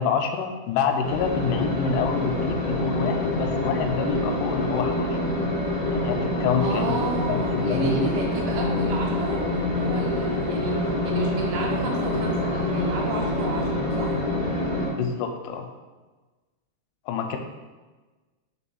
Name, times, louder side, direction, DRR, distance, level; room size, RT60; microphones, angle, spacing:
voice 1, 0.0-5.2 5.9-7.0 7.3-8.1 15.0-15.7 17.1-17.4, left 6 dB, 85° left, 4 dB, 2.6 m, -27 dB
sound 1, 1.0-14.9, left 1 dB, 40° left, 1.3 m, -26 dB
voice 2, 6.6-9.4 9.7-10.8 11.0-14.2, right 3 dB, 75° right, 0 dB, 2.4 m, -32 dB
7.0 x 6.6 x 2.3 m, 1.3 s
omnidirectional pair, 4.8 m